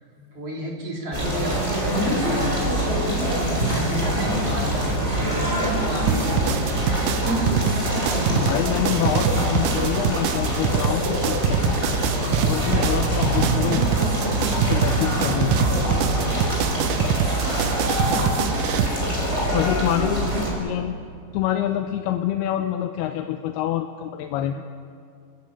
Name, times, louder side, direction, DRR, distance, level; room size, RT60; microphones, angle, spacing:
voice 1, 0.1-2.9 3.7-7.8 17.3-18.2, equal, 40° right, -2 dB, 4.3 m, -34 dB
sound 1, 1.1-20.5, right 1 dB, 15° right, 5.1 m, -24 dB
sound 2, 6.1-18.9, right 10 dB, 85° right, 1.9 m, -25 dB
voice 2, 8.3-11.8 12.4-13.8 14.7-15.9 19.5-21.0 21.3-24.6, left 12 dB, 80° left, 6 dB, 2.7 m, -26 dB
30.0 x 14.5 x 8.6 m, 2.4 s
omnidirectional pair, 4.6 m